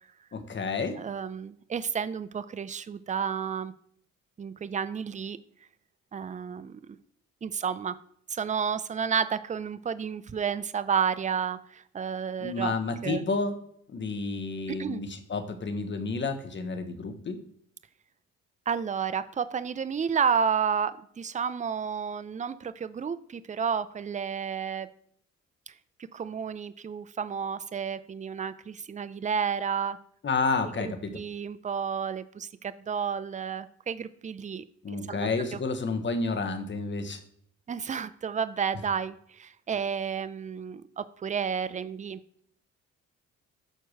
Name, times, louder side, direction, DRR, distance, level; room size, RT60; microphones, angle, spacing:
voice 1, 0.3-1.0 12.4-13.6 13.9-17.4 30.2-31.2 34.8-37.2, left 4 dB, 40° left, 8 dB, 1.2 m, -30 dB
voice 2, 1.0-3.7 4.4-5.4 6.1-7.0 7.4-8.0 8.3-12.7 13.0-13.2 14.7-15.0 18.7-24.9 25.7-25.8 26.1-30.0 30.8-34.6 35.1-35.6 37.7-42.2, right 7 dB, 25° right, 14 dB, 0.5 m, -31 dB
6.6 x 4.5 x 6.4 m, 0.66 s
cardioid pair, 90°, 30 cm